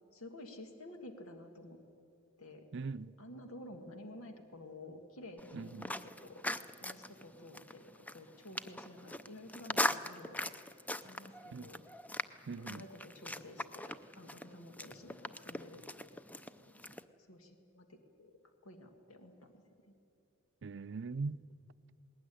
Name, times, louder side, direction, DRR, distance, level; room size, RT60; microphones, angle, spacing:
voice 1, 0.1-1.8 2.4-2.7 3.2-6.4 6.8-10.5 11.0-11.8 12.5-16.2 16.6-19.9, left 1 dB, 90° left, 1.7 m, -52 dB
voice 2, 2.7-3.1 5.5-5.8 11.5-11.7 12.5-12.8 20.6-21.4, right 4 dB, 60° right, 0.5 m, -40 dB
sound 1, 5.4-17.0, left 1 dB, 5° left, 0.5 m, -41 dB
19.5 x 19.0 x 10.0 m
head